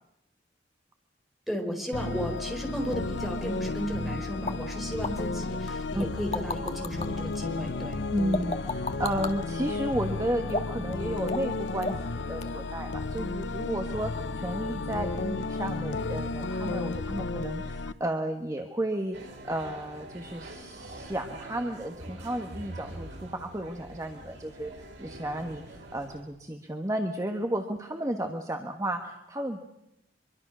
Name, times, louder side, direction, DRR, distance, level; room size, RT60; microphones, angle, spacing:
voice 1, 1.5-8.0, equal, ahead, 2 dB, 4.4 m, -34 dB
sound 1, 1.9-17.9, left 3 dB, 80° left, 0.8 m, -33 dB
sound 2, 4.5-4.6 5.0-5.1 6.0-7.1 8.3-9.3 10.5-10.9 11.3-11.5 11.8-12.1 12.4-12.5, left 3 dB, 35° left, 1.8 m, -32 dB
voice 2, 8.1-29.6, right 1 dB, 20° right, 4 dB, 1.5 m, -33 dB
sound 3, 19.1-26.2, right 1 dB, 85° right, 7.5 m, -44 dB
24.5 x 23.5 x 6.2 m, 0.84 s
head